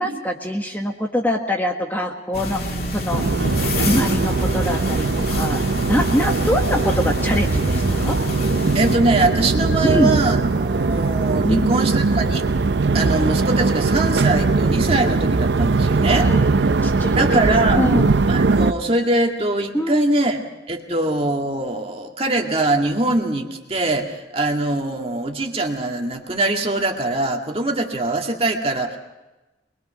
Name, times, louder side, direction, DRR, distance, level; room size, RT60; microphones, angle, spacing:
voice 1, 0.0-3.2 3.6-8.2 9.8-10.2 11.4-11.7 16.1-16.4 16.8-18.1 19.7-20.0, equal, 10° left, 1 dB, 1.5 m, -24 dB
sound 1, 2.3-9.0, left 2 dB, 55° left, 2.8 m, -28 dB
sound 2, 3.1-18.7, right 3 dB, 75° right, 0.6 m, -20 dB
voice 2, 8.7-12.5 12.9-16.3 17.2-17.8 18.3-29.0, right 2 dB, 30° right, 2 dB, 2.0 m, -22 dB
24.5 x 21.5 x 5.7 m, 1.1 s
head